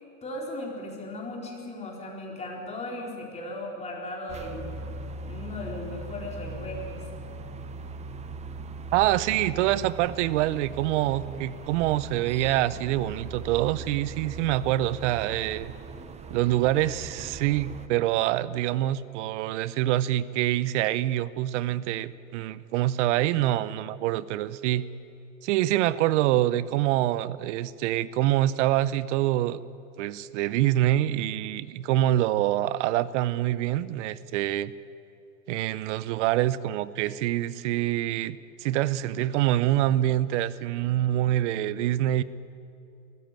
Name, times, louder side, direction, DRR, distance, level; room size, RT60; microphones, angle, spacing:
voice 1, 0.2-4.7 5.2-7.0, left 1 dB, 15° left, -1 dB, 4.3 m, -37 dB
sound 1, 4.3-17.9, right 3 dB, 15° right, 1.0 m, -39 dB
voice 2, 8.9-15.7 16.3-24.9 25.4-29.6 30.0-34.7 35.5-42.2, right 14 dB, 60° right, 17 dB, 0.9 m, -25 dB
22.0 x 15.0 x 9.2 m, 2.6 s
supercardioid pair, 135°, 39 cm